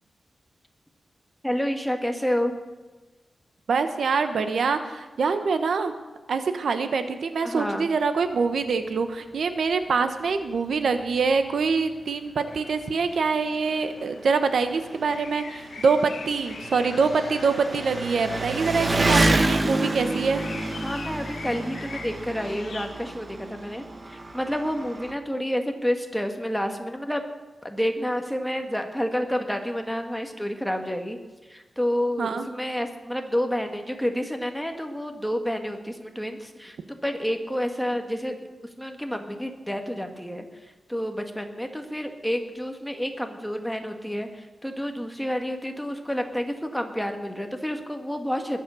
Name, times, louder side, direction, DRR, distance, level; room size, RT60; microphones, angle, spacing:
voice 1, 1.4-2.6 7.4-7.9 20.8-27.2 27.6-31.2 31.5-38.4 38.8-48.6, equal, 5° left, 5 dB, 1.6 m, -29 dB
voice 2, 3.7-5.9 6.3-20.4 32.2-32.5, right 5 dB, 85° right, 9 dB, 1.0 m, -25 dB
Engine, 10.6-10.7 11.0-11.1 12.1-12.2 12.4-25.1, right 2 dB, 30° right, 1.0 m, -29 dB
sound 1, 12.5-22.9, left 5 dB, 90° left, 1.3 m, -43 dB
21.0 x 7.4 x 6.9 m, 1.2 s
wide cardioid pair, 120°, 0 cm